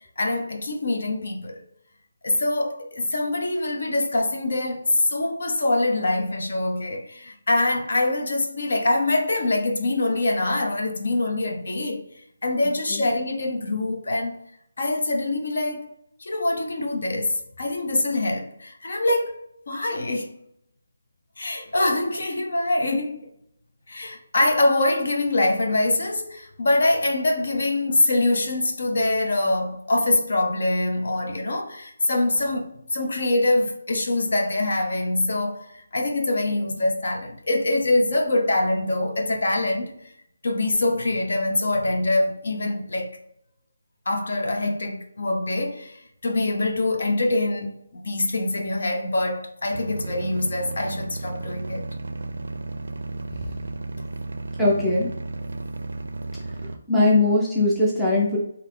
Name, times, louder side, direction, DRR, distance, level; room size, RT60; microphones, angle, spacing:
voice 1, 0.2-1.6 2.2-12.0 12.4-14.4 14.8-15.8 16.2-19.4 19.7-20.3 21.4-23.3 23.9-39.9 40.4-43.2 44.1-51.9, left 2 dB, 55° left, 0.7 m, -24 dB
sound 1, 49.7-56.8, right 2 dB, 65° right, 0.4 m, -33 dB
voice 2, 54.6-55.2 56.9-58.4, left 2 dB, ahead, 0.5 m, -20 dB
4.0 x 2.7 x 3.7 m
hypercardioid pair, 180°, 0 cm